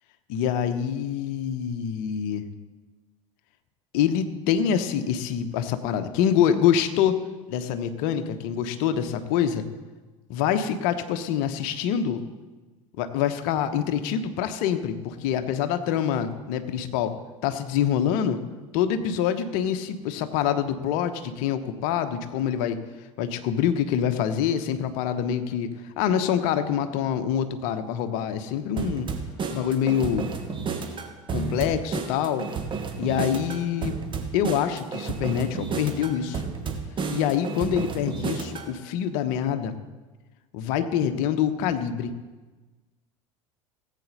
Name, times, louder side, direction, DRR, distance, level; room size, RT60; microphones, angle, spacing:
voice 1, 0.3-2.5 3.9-7.2 7.5-9.7 10.3-12.2 13.0-18.4 18.7-22.8 23.2-29.1 29.5-30.3 31.3-32.5 33.0-34.0 34.3-36.4 37.1-39.7 40.5-42.1, left 9 dB, 55° left, 10 dB, 1.0 m, -25 dB
sound 1, 28.8-38.7, right 5 dB, 30° right, 1.5 m, -31 dB
18.0 x 8.3 x 4.1 m, 1.2 s
figure-of-eight pair, 75°, 17 cm